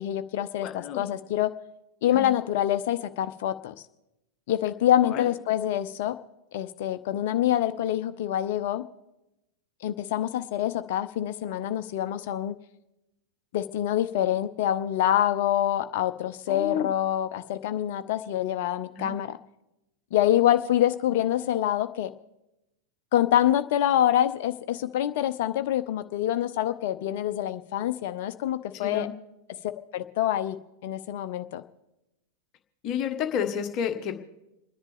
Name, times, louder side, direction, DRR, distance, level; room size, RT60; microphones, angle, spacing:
voice 1, 0.0-1.5 2.0-3.7 4.5-6.2 6.5-8.9 9.8-12.6 13.5-19.4 20.1-22.1 23.1-29.1 29.9-30.6 30.8-31.6, left 12 dB, 50° left, 11 dB, 0.7 m, -26 dB
voice 2, 0.6-1.0 2.1-2.3 5.0-5.3 16.5-16.9 19.0-19.1 28.8-29.1 32.8-34.1, left 8 dB, 35° left, 6 dB, 1.4 m, -30 dB
29.5 x 10.5 x 3.5 m, 0.94 s
figure-of-eight pair, 90°, 0 cm